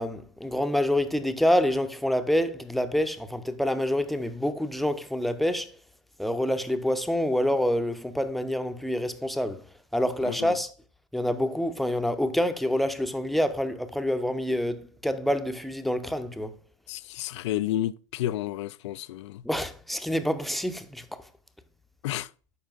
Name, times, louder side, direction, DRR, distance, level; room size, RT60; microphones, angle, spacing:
voice 1, 0.0-5.7 6.2-9.7 9.9-10.7 11.1-16.6 19.4-21.1, equal, ahead, 0.7 m, -27 dB
voice 2, 10.2-10.6 16.9-19.4 22.0-22.3, left 13 dB, 60° left, 0.4 m, -31 dB
12.0 x 5.1 x 2.5 m
figure-of-eight pair, 85°, 17 cm